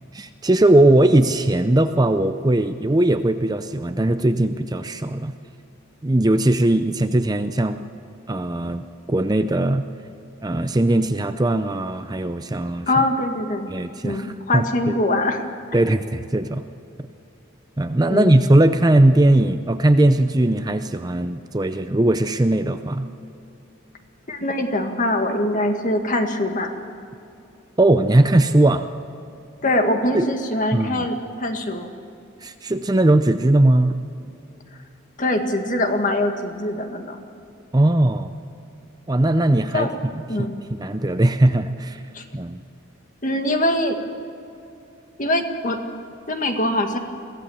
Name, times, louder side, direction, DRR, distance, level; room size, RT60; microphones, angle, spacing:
voice 1, 0.1-5.3 6.0-7.8 8.3-9.9 10.4-12.9 13.7-14.3 14.5-14.9 15.7-16.6 17.8-23.1 27.8-28.9 30.1-30.3 30.7-31.1 32.4-33.9 37.7-38.3 39.1-39.9 40.4-40.5 40.8-42.0 42.3-42.6, right 1 dB, 20° right, 9 dB, 0.6 m, -19 dB
voice 2, 12.9-13.7 14.0-15.5 18.1-18.3 24.3-26.7 29.6-31.9 35.2-37.2 39.7-40.0 40.3-40.6 42.1-42.3 43.2-44.0 45.2-45.8 46.3-47.0, left 1 dB, 40° left, 5 dB, 1.8 m, -23 dB
23.0 x 16.0 x 7.2 m, 2.7 s
head